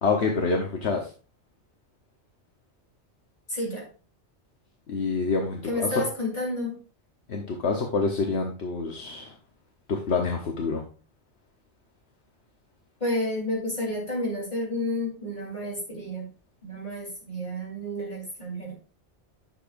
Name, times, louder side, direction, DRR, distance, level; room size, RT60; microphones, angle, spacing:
voice 1, 0.0-1.1 4.9-6.0 7.3-9.3 9.9-10.8, left 4 dB, 70° left, 2 dB, 1.3 m, -27 dB
voice 2, 3.5-3.9 5.6-6.8 13.0-16.3 16.6-18.7, left 1 dB, 40° left, -3 dB, 3.5 m, -30 dB
10.0 x 6.7 x 2.5 m, 0.36 s
omnidirectional pair, 1.2 m